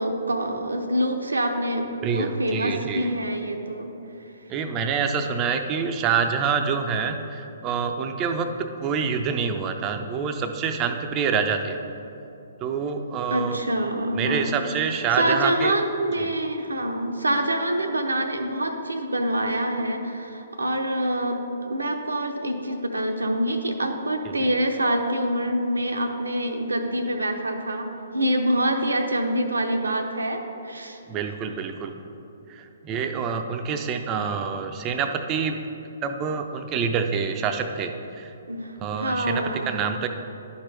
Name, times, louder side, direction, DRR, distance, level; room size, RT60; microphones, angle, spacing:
voice 1, 0.0-3.9 13.3-14.6 15.2-31.0 38.5-39.9, right 1 dB, 85° right, 4 dB, 0.7 m, -26 dB
voice 2, 2.0-3.1 4.5-11.8 12.6-13.6 14.2-15.8 16.2-16.4 24.4-24.5 31.1-32.0 32.5-35.6 36.0-38.3 38.8-40.1, right 6 dB, 25° right, 6 dB, 0.5 m, -27 dB
11.5 x 4.4 x 3.4 m, 2.8 s
figure-of-eight pair, 130°, 0 cm